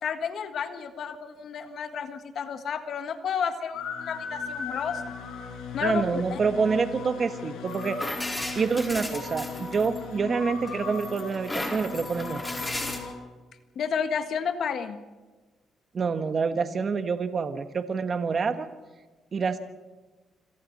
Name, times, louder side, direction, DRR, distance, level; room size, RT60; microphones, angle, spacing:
voice 1, 0.0-5.0 5.7-6.4 13.8-15.0, left 7 dB, 65° left, 8 dB, 1.8 m, -31 dB
sound 1, 3.7-13.1, left 5 dB, 85° left, 5.3 m, -37 dB
voice 2, 5.8-8.1 8.5-12.4 15.9-18.7 19.3-19.6, right 5 dB, 45° right, 8 dB, 1.4 m, -27 dB
sound 2, 7.7-10.2 10.7-13.0, left 1 dB, 15° left, 4.5 m, -35 dB
27.0 x 27.0 x 4.3 m, 1.2 s
cardioid pair, 90°, 0 cm